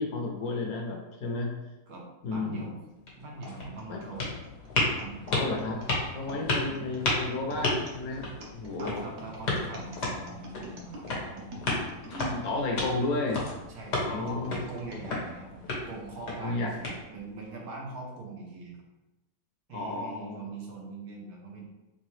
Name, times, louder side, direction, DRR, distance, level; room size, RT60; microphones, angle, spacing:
voice 1, 0.0-1.5 2.2-2.7 3.9-4.2 5.3-5.8 6.1-9.0 12.0-13.4 14.0-14.5 16.4-16.7 19.7-20.4, left 2 dB, 70° left, 1 dB, 1.1 m, -32 dB
voice 2, 2.3-2.8 3.2-4.4 5.0-5.3 6.2-6.4 8.8-11.7 12.7-13.0 13.7-18.8 19.7-21.6, right 3 dB, 75° right, -1 dB, 1.4 m, -42 dB
sound 1, 2.9-17.4, left 2 dB, 85° left, 1.7 m, -34 dB
sound 2, 3.4-12.9 13.5-15.1 15.7-15.8 16.6-16.9, right 1 dB, 55° right, 1.0 m, -46 dB
3.8 x 3.3 x 3.1 m, 1.0 s
omnidirectional pair, 1.7 m